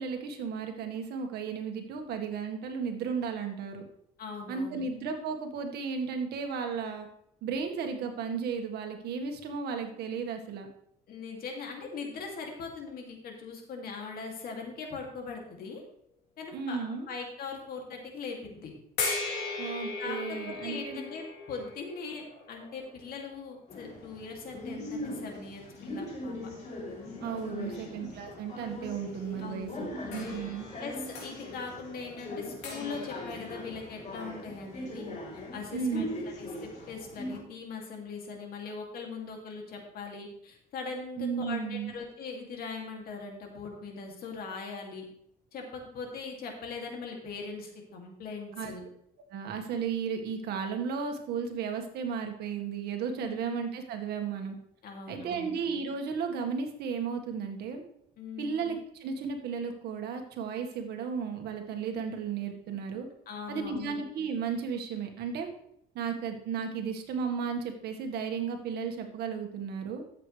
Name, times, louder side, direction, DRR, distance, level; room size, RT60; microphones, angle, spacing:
voice 1, 0.0-3.8 4.5-7.1 7.4-10.7 16.5-17.1 19.6-21.0 27.2-29.7 30.1-30.7 35.7-36.2 41.2-42.0 48.5-48.7 49.3-54.6 55.1-57.8 58.4-63.1 63.5-65.5 66.0-70.0, right 6 dB, 75° right, 4 dB, 1.7 m, -34 dB
voice 2, 4.2-4.8 11.1-15.8 16.4-18.7 20.0-26.3 27.5-27.8 29.4-30.3 30.8-45.0 45.5-48.8 53.1-53.5 54.8-55.5 58.2-58.5 63.3-63.9, left 4 dB, 60° left, 1 dB, 2.7 m, -41 dB
sound 1, 19.0-24.0 24.9-25.0 30.1-34.4, left 3 dB, 85° left, 3.3 m, -39 dB
sound 2, 23.7-37.4, left 1 dB, 40° left, 3.5 m, -40 dB
13.0 x 7.8 x 3.3 m, 0.71 s
cardioid pair, 110°, 17 cm